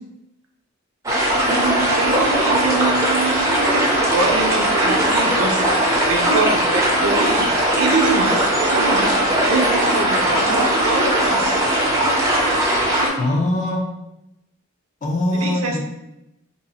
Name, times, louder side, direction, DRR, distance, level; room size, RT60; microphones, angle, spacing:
sound 1, 1.1-13.1, right 1 dB, 15° right, 0.5 m, -19 dB
voice 1, 1.4-5.7 6.0-7.5 7.8-9.2 9.4-11.6 15.3-15.8, right 3 dB, 75° right, 2 dB, 0.5 m, -24 dB
voice 2, 13.2-13.9 15.0-15.8, left 1 dB, 35° left, 0 dB, 0.5 m, -21 dB
2.7 x 2.4 x 4.0 m, 0.89 s
head